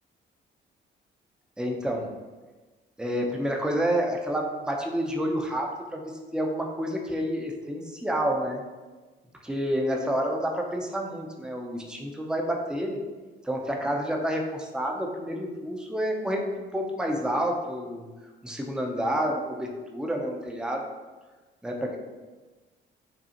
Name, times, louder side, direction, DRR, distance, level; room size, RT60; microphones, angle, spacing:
voice 1, 1.6-2.1 3.0-8.6 9.4-13.0 13.4-16.4 16.7-18.1 18.4-20.8 21.6-22.0, equal, 5° right, 1 dB, 0.5 m, -29 dB
5.2 x 2.4 x 2.8 m, 1.3 s
cardioid pair, 90°, 20 cm